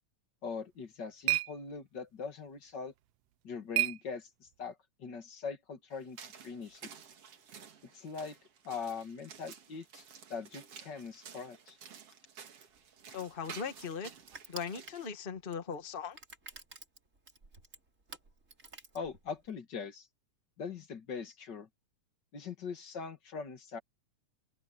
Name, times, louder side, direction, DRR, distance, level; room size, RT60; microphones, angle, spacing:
voice 1, 0.4-2.9 3.4-6.2 6.4-6.9 7.9-8.4 8.6-10.0 10.3-11.8 18.9-20.1 20.6-21.7 22.3-23.8, left 5 dB, 40° left, 2.0 m, -41 dB
sound 1, 0.5-4.7, right 16 dB, 90° right, 1.4 m, -37 dB
sound 2, 5.9-15.1, right 7 dB, 55° right, 2.8 m, -52 dB
Crushing, 12.7-19.6, right 3 dB, 25° right, 3.2 m, -52 dB
voice 2, 13.1-14.1 14.5-16.2, left 6 dB, 65° left, 0.5 m, -39 dB
open air
omnidirectional pair, 3.5 m